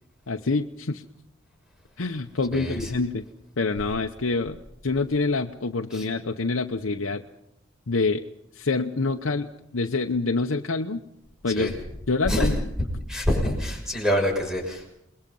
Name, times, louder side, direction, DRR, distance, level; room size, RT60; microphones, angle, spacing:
voice 1, 0.3-1.0 2.0-3.2 3.6-4.6 4.8-7.2 7.9-8.2 8.5-11.0 11.4-11.7 12.1-12.5, left 3 dB, 80° left, 4 dB, 0.9 m, -26 dB
voice 2, 2.5-2.9 5.9-6.1 11.5-11.7 12.3-12.5 13.1-14.9, equal, 5° right, 1 dB, 6.2 m, -26 dB
28.0 x 21.5 x 5.5 m, 0.77 s
head